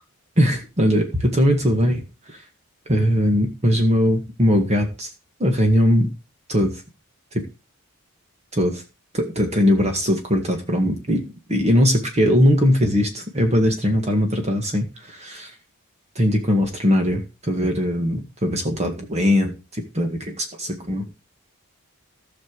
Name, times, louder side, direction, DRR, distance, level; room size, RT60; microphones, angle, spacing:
voice 1, 0.4-2.0 2.3-2.4 2.9-5.1 5.4-6.1 6.5-6.8 7.3-7.4 8.5-8.8 9.1-15.5 16.2-21.1, equal, 30° right, 4 dB, 1.9 m, -20 dB
15.5 x 6.1 x 4.8 m, 0.28 s
head